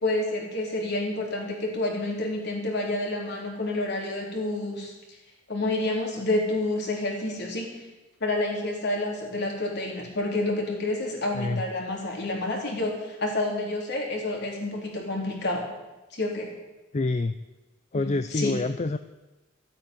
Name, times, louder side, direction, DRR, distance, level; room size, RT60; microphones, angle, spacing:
voice 1, 0.0-4.9 5.5-7.7 8.2-15.7 16.1-16.5 17.9-18.5, left 2 dB, 55° left, -1 dB, 3.8 m, -29 dB
voice 2, 16.9-17.4 17.9-19.0, left 2 dB, 35° left, 10 dB, 0.5 m, -27 dB
14.0 x 8.7 x 9.3 m, 1.1 s
head